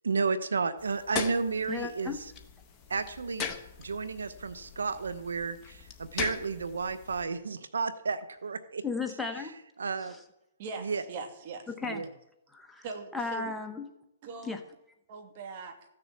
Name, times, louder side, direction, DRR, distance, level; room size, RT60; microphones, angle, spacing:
voice 1, 0.0-2.2 2.9-3.5 3.8-8.8 9.8-10.1 10.8-11.0 11.9-12.1, right 4 dB, 85° right, 13 dB, 0.8 m, -32 dB
sound 1, 0.8-7.2, left 6 dB, 20° left, 1.5 m, -40 dB
voice 2, 1.7-2.2 8.8-9.5 10.0-10.2 11.7-12.0 12.5-12.8 13.1-13.9 14.4-14.6, left 4 dB, 5° left, 4 dB, 1.0 m, -35 dB
voice 3, 10.6-12.0 12.8-13.5 14.2-14.6 15.1-15.8, right 4 dB, 45° right, 5 dB, 2.4 m, -41 dB
14.5 x 6.9 x 8.3 m, 0.84 s
hypercardioid pair, 140°, 0 cm